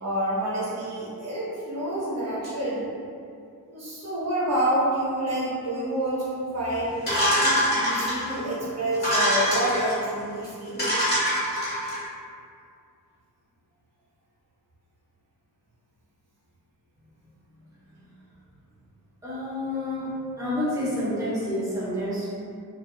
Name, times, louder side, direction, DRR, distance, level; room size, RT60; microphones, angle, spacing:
voice 1, 0.0-2.9 3.7-7.0 7.4-11.0, right 1 dB, 45° right, -7 dB, 0.9 m, -28 dB
sound 1, 7.1-8.4 8.9-10.0 10.4-10.5 10.8-12.0, equal, 25° left, 1.3 m, -24 dB
voice 2, 19.2-22.3, left 1 dB, 10° right, -11 dB, 0.9 m, -29 dB
2.5 x 2.4 x 2.3 m, 2.4 s
wide cardioid pair, 135°, 38 cm